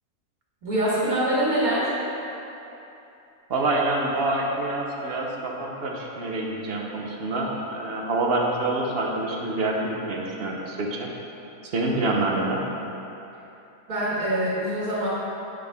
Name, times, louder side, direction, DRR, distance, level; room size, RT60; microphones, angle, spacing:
voice 1, 0.6-1.9 13.9-15.1, right 1 dB, 70° right, -8 dB, 2.0 m, -24 dB
voice 2, 3.5-11.1 11.6-12.6, right 2 dB, 45° right, -1 dB, 0.9 m, -26 dB
8.5 x 6.4 x 3.5 m, 2.9 s
omnidirectional pair, 1.7 m